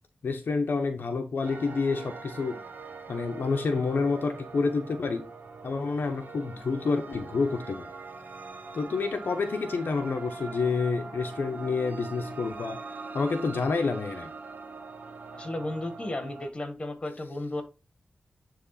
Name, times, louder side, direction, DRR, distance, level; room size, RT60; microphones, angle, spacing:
voice 1, 0.2-2.6 3.1-5.3 5.6-7.9 8.7-12.8 13.1-14.3, left 4 dB, 75° left, 0.8 m, -28 dB
sound 1, 1.4-16.5, right 4 dB, 65° right, 1.1 m, -42 dB
voice 2, 15.3-17.6, left 2 dB, 30° left, 1.4 m, -34 dB
9.7 x 3.3 x 4.1 m
wide cardioid pair, 125°, 3 cm